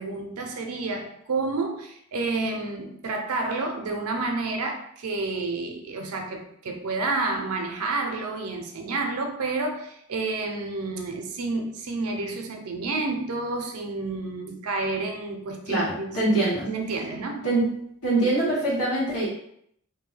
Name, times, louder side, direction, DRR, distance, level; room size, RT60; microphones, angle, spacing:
voice 1, 0.0-16.2 16.7-17.5, right 3 dB, 80° right, 3 dB, 0.5 m, -30 dB
voice 2, 15.7-16.7 17.4-17.7 18.0-19.3, right 2 dB, 85° left, -7 dB, 1.5 m, -23 dB
2.7 x 2.2 x 3.1 m, 0.70 s
head